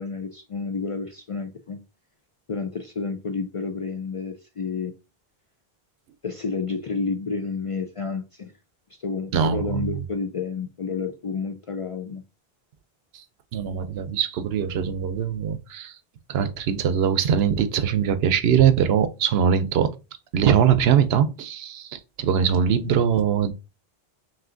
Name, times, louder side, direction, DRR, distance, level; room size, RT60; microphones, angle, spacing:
voice 1, 0.0-1.8 2.5-4.9 6.2-8.5 9.0-12.2, left 4 dB, 50° left, 0.4 m, -30 dB
voice 2, 9.3-10.0 13.1-13.2 13.5-16.0 16.3-19.9 20.3-23.5, right 8 dB, 80° right, 0.8 m, -22 dB
5.4 x 3.0 x 2.5 m
omnidirectional pair, 1.0 m